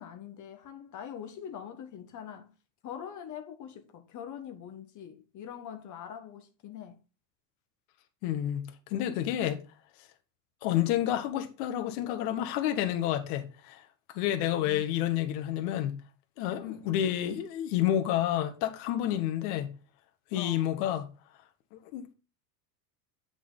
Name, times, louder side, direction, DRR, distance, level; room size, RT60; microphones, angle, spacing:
voice 1, 0.0-2.5 2.8-7.0 14.6-14.8 16.6-16.9 20.3-20.7, left 9 dB, 40° left, 1.3 m, -43 dB
voice 2, 8.2-9.6 10.6-13.8 14.1-16.0 16.4-19.7 20.3-21.0 21.9-22.1, left 11 dB, 65° left, 1.6 m, -29 dB
7.9 x 6.0 x 3.9 m
supercardioid pair, 125°, 48 cm